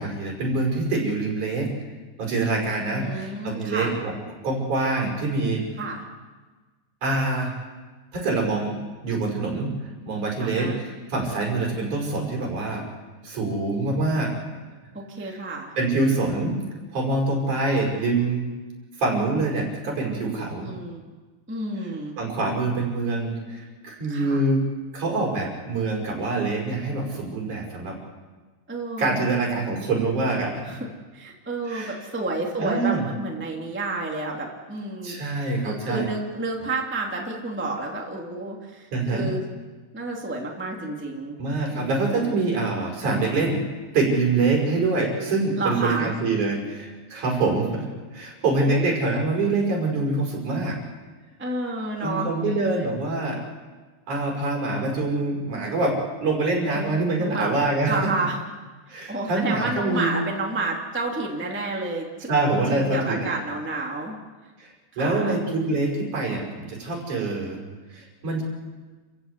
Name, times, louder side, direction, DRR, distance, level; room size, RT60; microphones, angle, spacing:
voice 1, 0.0-1.7 2.2-4.1 4.4-5.7 7.0-7.5 8.1-8.7 9.0-9.7 10.1-12.8 13.2-14.3 15.2-15.4 15.8-16.6 16.9-18.5 19.0-20.7 22.2-24.7 24.9-28.0 29.0-30.8 31.7-32.0 32.6-33.0 35.0-36.1 38.9-39.3 41.4-43.6 43.9-50.8 52.0-53.4 54.1-58.1 58.9-60.2 62.3-63.3 64.6-67.6 67.9-68.4, right 3 dB, 40° right, 0 dB, 6.7 m, -25 dB
voice 2, 2.9-3.9 5.8-6.0 10.4-10.8 14.9-15.7 20.6-21.1 21.5-22.2 24.1-24.4 28.7-29.3 30.6-30.9 31.1-35.2 35.6-39.4 39.9-41.4 41.7-42.3 45.5-46.1 48.6-48.9 51.4-52.9 56.7-57.6 57.8-58.4 59.1-64.2 65.0-65.4, right 2 dB, 10° right, -1 dB, 0.8 m, -30 dB
29.5 x 15.5 x 8.2 m, 1.3 s
omnidirectional pair, 5.8 m